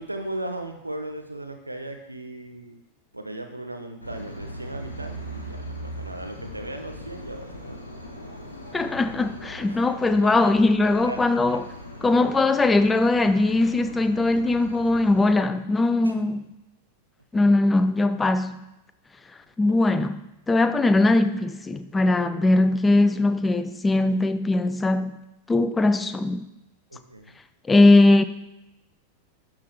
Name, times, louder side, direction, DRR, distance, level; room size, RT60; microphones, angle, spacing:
voice 1, 0.0-2.8 3.1-7.9 9.7-10.5 11.0-11.6 16.0-16.1 26.9-27.4, right 1 dB, 85° right, 5 dB, 0.7 m, -37 dB
sound 1, 4.0-15.3, equal, 85° left, 1.0 m, -40 dB
voice 2, 8.7-11.6 12.0-16.5 17.3-18.6 19.6-20.2 20.5-25.2 25.5-26.5 27.7-28.2, left 2 dB, 15° left, 11 dB, 0.4 m, -20 dB
11.5 x 3.8 x 3.2 m, 0.93 s
figure-of-eight pair, 90°, 0 cm